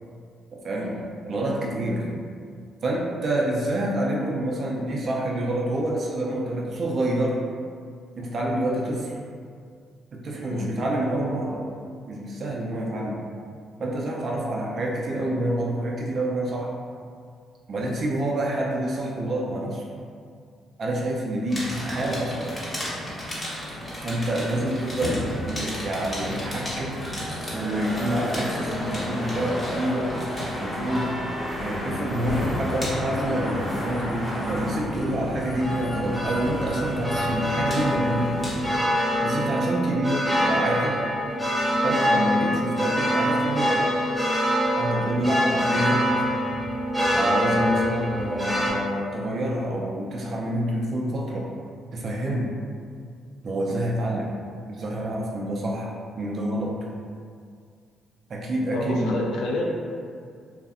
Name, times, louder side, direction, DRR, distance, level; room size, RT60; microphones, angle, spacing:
voice 1, 0.5-0.9 1.3-2.0 2.8-7.4 8.2-9.1 10.1-11.6 12.1-13.2 13.8-16.7 17.7-19.9 20.8-22.5 24.0-27.0 27.5-31.1 31.6-38.4 39.2-41.0 41.8-43.9 44.8-46.2 47.1-51.5 51.9-52.5 53.4-54.4 54.7-56.7 58.3-59.1, right 1 dB, 50° right, -3 dB, 0.3 m, -27 dB
sound 1, 21.5-38.7, left 1 dB, 30° left, 0.9 m, -32 dB
sound 2, 30.0-48.7, equal, ahead, 0.6 m, -26 dB
voice 2, 58.7-59.6, left 1 dB, 85° left, -3 dB, 0.4 m, -30 dB
2.5 x 2.0 x 2.4 m, 2.2 s
cardioid pair, 90°, 0 cm